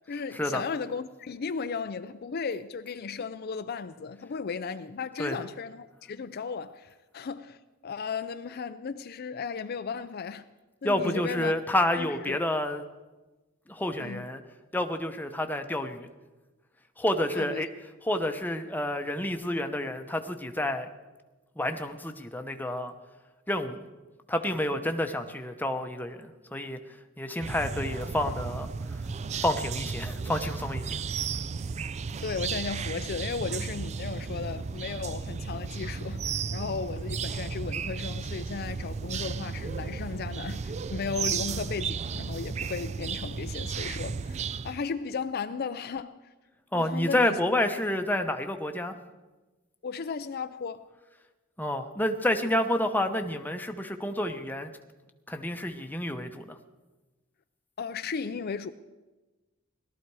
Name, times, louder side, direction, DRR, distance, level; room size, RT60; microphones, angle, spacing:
voice 1, 0.1-7.6 7.8-10.5 10.8-11.5 11.9-12.4 14.0-14.3 17.3-17.7 32.2-46.2 46.7-47.7 49.8-50.9 57.8-58.7, left 5 dB, 50° left, 0.4 m, -35 dB
voice 2, 10.8-12.8 13.7-14.4 14.7-16.1 17.0-17.7 18.0-20.9 21.6-22.9 23.5-23.8 24.3-26.8 27.2-29.0 29.4-31.0 46.7-48.9 51.6-54.7 55.3-56.6, left 1 dB, 10° left, 0.9 m, -29 dB
sound 1, 27.4-44.9, right 5 dB, 35° right, 0.4 m, -34 dB
18.5 x 13.0 x 4.7 m
head